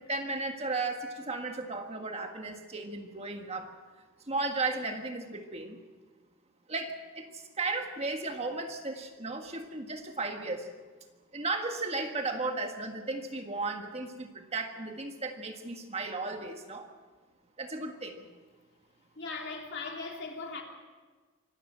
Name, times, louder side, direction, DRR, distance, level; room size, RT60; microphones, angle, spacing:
voice 1, 0.0-3.7 4.3-5.8 6.7-10.7 11.3-16.9 17.6-18.2, right 3 dB, 30° right, 1.6 m, -35 dB
voice 2, 19.1-20.6, left 3 dB, 55° left, 3.1 m, -38 dB
25.0 x 13.5 x 7.8 m
head